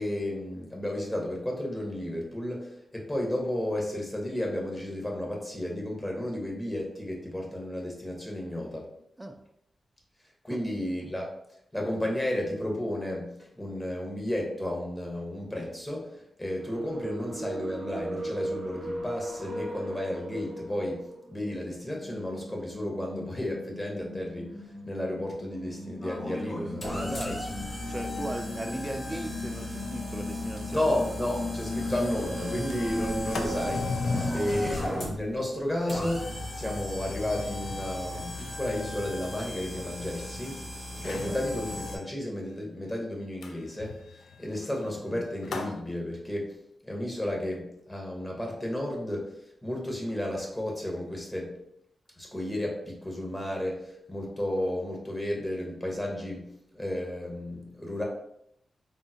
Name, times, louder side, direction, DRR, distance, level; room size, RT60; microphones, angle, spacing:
voice 1, 0.0-8.9 10.4-11.3 11.7-27.5 30.7-34.0 34.3-40.6 41.0-44.0 44.4-46.6 46.8-49.3 49.6-51.6 52.2-58.0, left 1 dB, 15° left, -1 dB, 0.9 m, -33 dB
sound 1, 16.6-34.7, equal, 85° right, 0.7 m, -37 dB
sound 2, 26.0-42.0, left 1 dB, 50° left, 1.0 m, -37 dB
voice 2, 26.9-27.5 27.9-31.0 33.5-33.7 34.1-34.8 41.1-41.4, right 1 dB, 15° right, 5 dB, 0.3 m, -38 dB
Sliding door, 31.0-31.1 31.4-31.5 31.8-32.1 32.5-40.5 40.9-41.4 43.4-45.8, left 4 dB, 85° left, 0.3 m, -40 dB
3.6 x 2.0 x 2.7 m, 0.74 s
cardioid pair, 70°, 0 cm